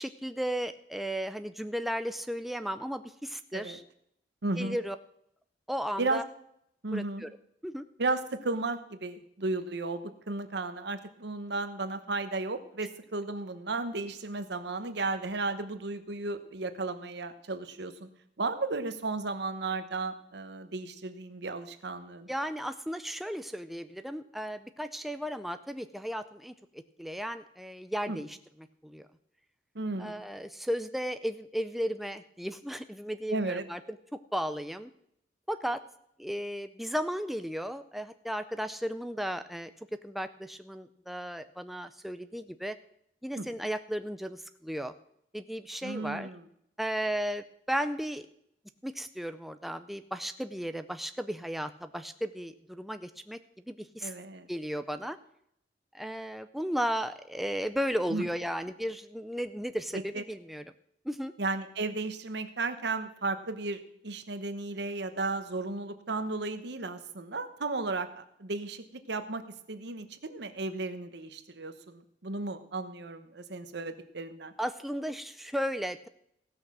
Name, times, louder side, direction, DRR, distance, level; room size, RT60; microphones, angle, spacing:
voice 1, 0.0-3.8 4.6-5.0 5.7-6.2 6.9-7.3 7.6-7.8 22.3-28.4 28.8-29.1 30.0-34.9 35.5-35.8 36.2-39.7 40.0-42.8 43.2-44.9 45.3-46.3 46.8-48.3 48.8-53.4 53.7-54.1 54.5-55.2 55.9-60.6 61.1-61.3 74.6-76.1, equal, ahead, 9 dB, 0.4 m, -35 dB
voice 2, 4.4-4.8 6.0-6.2 6.8-7.2 8.0-18.1 18.4-22.3 28.1-28.2 29.7-30.2 33.3-33.6 43.4-43.5 45.8-46.4 54.0-54.5 58.1-58.3 59.9-60.2 61.4-69.4 69.7-74.5, right 3 dB, 65° right, 10 dB, 1.0 m, -34 dB
16.5 x 6.4 x 6.1 m, 0.73 s
head